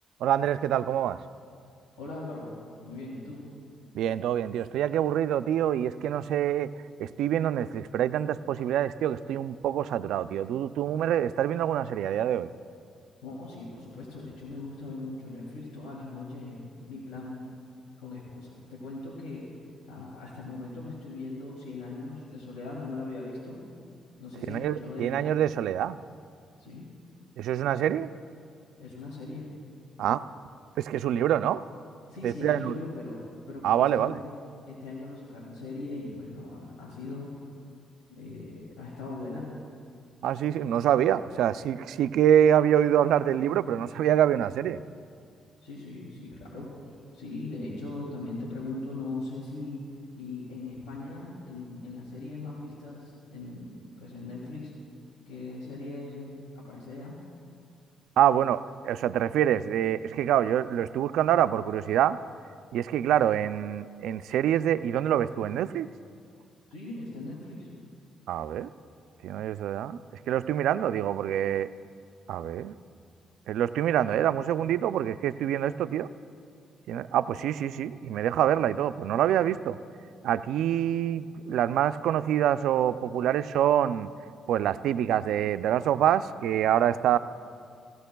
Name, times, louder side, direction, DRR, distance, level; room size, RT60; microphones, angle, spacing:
voice 1, 0.2-1.2 3.9-6.7 7.0-12.5 24.5-26.0 27.4-28.1 30.0-30.2 30.8-31.6 32.2-32.7 33.6-34.2 40.2-44.8 58.2-62.2 62.7-65.9 68.3-68.7 69.2-70.0 70.3-71.7 72.3-72.7 73.5-76.1 76.9-79.8 80.2-84.1 84.5-87.2, right 10 dB, 80° right, 13 dB, 0.3 m, -25 dB
voice 2, 2.0-2.5 2.8-3.5 13.2-17.5 18.0-19.6 19.9-23.6 24.2-25.2 26.6-26.8 28.8-29.5 32.1-34.3 34.6-37.3 38.1-39.6 45.6-46.7 47.1-49.8 50.1-54.7 55.2-57.2 66.7-67.7, left 2 dB, 90° left, -6 dB, 2.7 m, -40 dB
17.0 x 15.5 x 2.3 m, 2.3 s
cardioid pair, 90°, 0 cm